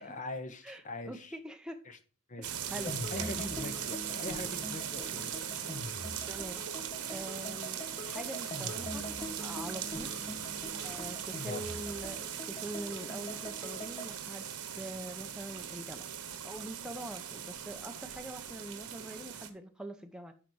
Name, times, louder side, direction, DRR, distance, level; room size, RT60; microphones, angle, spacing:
voice 1, 0.0-1.4 1.8-2.0 2.3-2.5 2.8-5.5 11.4-11.6, left 2 dB, 35° left, 1.0 m, -42 dB
voice 2, 0.6-1.8 2.4-3.4 6.2-6.6 7.1-10.1 10.8-14.5 14.7-16.1 16.4-20.3, right 1 dB, 5° right, 0.8 m, -44 dB
sound 1, 2.4-19.5, right 9 dB, 90° right, 1.1 m, -40 dB
sound 2, 2.9-14.2, left 1 dB, 20° left, 1.4 m, -43 dB
10.5 x 4.2 x 4.7 m
head